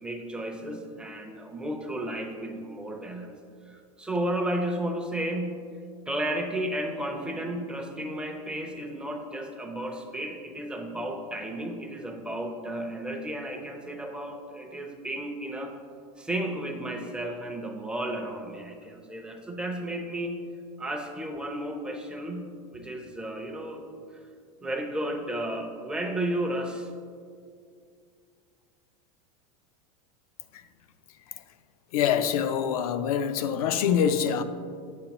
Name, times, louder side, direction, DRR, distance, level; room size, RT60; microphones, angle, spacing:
voice 1, 0.0-3.4 3.7-5.6 6.1-15.8 16.2-20.4 20.8-23.8 24.6-26.9, right 1 dB, 5° right, 0.5 m, -33 dB
voice 2, 31.9-34.4, left 8 dB, 80° left, 0.5 m, -25 dB
8.1 x 6.7 x 2.9 m
supercardioid pair, 150°, 19 cm